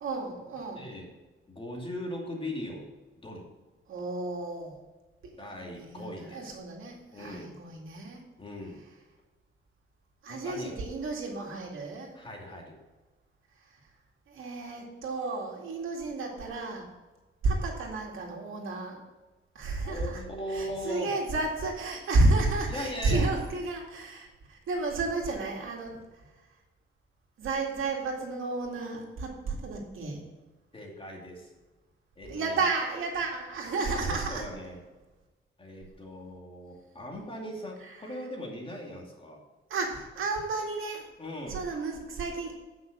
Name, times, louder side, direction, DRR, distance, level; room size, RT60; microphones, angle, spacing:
voice 1, 0.0-0.9 3.9-4.8 5.2-8.2 10.2-12.1 14.3-16.9 17.4-19.0 19.5-20.2 20.5-26.0 27.4-30.3 32.3-34.5 37.8-38.1 39.7-41.1 41.5-42.5, right 3 dB, 75° right, 0 dB, 2.2 m, -31 dB
voice 2, 0.8-1.1 1.5-2.9 3.2-3.5 5.4-6.6 7.1-7.5 8.4-8.8 10.3-10.8 12.1-12.8 19.8-21.1 22.7-23.2 30.7-31.5 32.2-32.6 33.9-34.8 35.6-39.4 41.2-41.6, equal, 25° left, -1 dB, 2.5 m, -39 dB
9.2 x 5.9 x 6.0 m, 1.2 s
cardioid pair, 105°, 21 cm